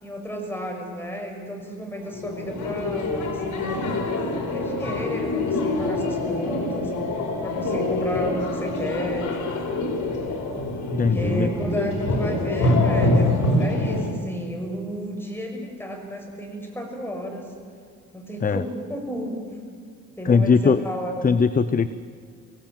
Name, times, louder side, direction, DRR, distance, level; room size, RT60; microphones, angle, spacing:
voice 1, 0.0-4.1 4.5-6.9 7.4-9.3 10.9-17.5 18.1-19.4 20.2-21.3, equal, 5° left, 2 dB, 6.3 m, -32 dB
sound 1, 2.1-14.1, left 2 dB, 70° left, 4.8 m, -25 dB
sound 2, 2.2-10.1, equal, 10° right, 7.2 m, -43 dB
voice 2, 11.0-11.5 18.4-18.6 20.2-20.8 21.2-21.9, left 5 dB, 30° left, 14 dB, 0.7 m, -19 dB
24.5 x 17.0 x 8.9 m, 2.2 s
cardioid pair, 90°, 30 cm